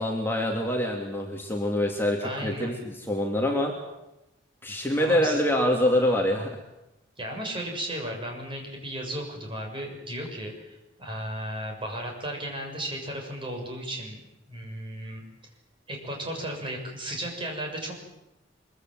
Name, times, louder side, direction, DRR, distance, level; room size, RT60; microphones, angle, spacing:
voice 1, 0.0-3.7 4.6-6.6, left 1 dB, 10° left, 0 dB, 2.8 m, -25 dB
voice 2, 2.2-2.9 5.0-5.4 7.2-14.2 14.5-15.2 15.9-17.9, right 1 dB, 25° right, 1 dB, 6.8 m, -35 dB
24.5 x 24.0 x 7.8 m, 0.91 s
head